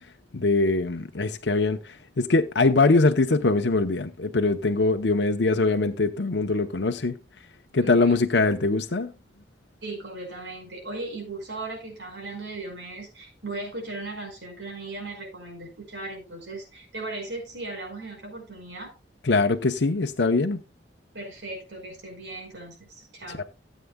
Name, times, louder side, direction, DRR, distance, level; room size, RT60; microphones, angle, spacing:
voice 1, 0.3-7.2 7.7-9.1 19.2-20.6 23.3-23.4, left 3 dB, 75° left, 0.8 m, -22 dB
voice 2, 7.8-8.2 9.8-18.9 21.1-23.4, right 2 dB, 80° right, 5.2 m, -37 dB
16.5 x 8.4 x 2.3 m
head